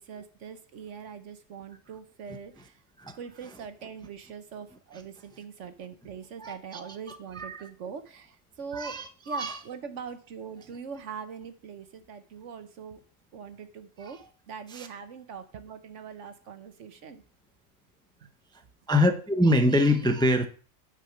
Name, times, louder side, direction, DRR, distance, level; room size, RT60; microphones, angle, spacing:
voice 1, 0.0-2.8 3.2-9.0 9.3-13.0 13.3-14.2 14.5-17.2, right 6 dB, 70° right, 10 dB, 1.2 m, -42 dB
voice 2, 6.4-7.7 8.7-9.6 14.0-14.3 14.7-14.9 18.9-20.5, left 1 dB, 5° left, 6 dB, 0.6 m, -25 dB
9.7 x 5.2 x 5.8 m, 0.41 s
omnidirectional pair, 1.3 m